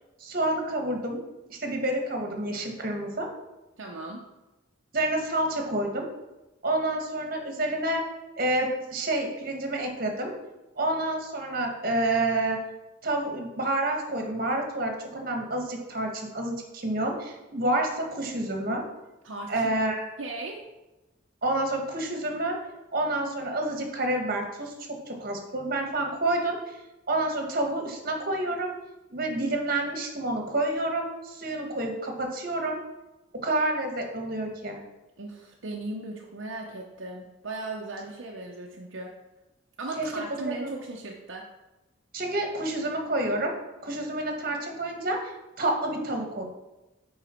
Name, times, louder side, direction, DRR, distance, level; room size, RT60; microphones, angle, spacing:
voice 1, 0.2-1.2 1.5-3.3 4.9-6.1 6.6-8.0 8.4-10.3 10.8-12.6 13.0-18.8 19.5-20.0 21.4-22.6 22.9-24.7 25.1-26.8 27.1-28.7 29.1-32.8 33.3-34.8 40.0-40.1 40.4-40.7 42.1-43.5 43.8-45.3 45.6-46.5, right 1 dB, 50° right, 2 dB, 1.5 m, -28 dB
voice 2, 3.8-4.3 19.2-19.7 20.2-20.6 35.2-39.1 39.8-41.5, right 2 dB, 70° right, -1 dB, 0.8 m, -37 dB
9.1 x 4.8 x 4.4 m, 1.0 s
head